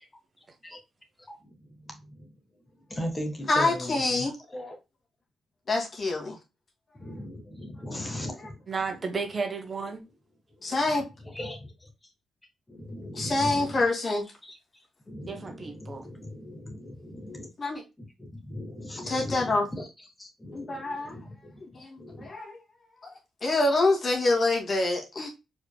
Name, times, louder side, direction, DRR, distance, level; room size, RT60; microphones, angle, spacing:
voice 1, 1.3-2.3 2.9-4.8 7.0-8.6 10.6-11.9 12.7-13.8 14.4-14.6 15.1-17.5 18.2-19.9 20.2-22.3, left 1 dB, 20° left, 1.7 m, -39 dB
voice 2, 3.5-4.3 5.7-6.4 8.0-8.5 10.6-11.0 13.1-14.2 17.6-17.8 19.1-19.7 20.5-21.1 21.7-22.5 23.0-25.3, left 2 dB, 45° left, 2.3 m, -26 dB
voice 3, 8.7-10.0 15.3-16.0, right 4 dB, 40° right, 1.2 m, -33 dB
5.0 x 4.3 x 2.3 m
cardioid pair, 75°, 0 cm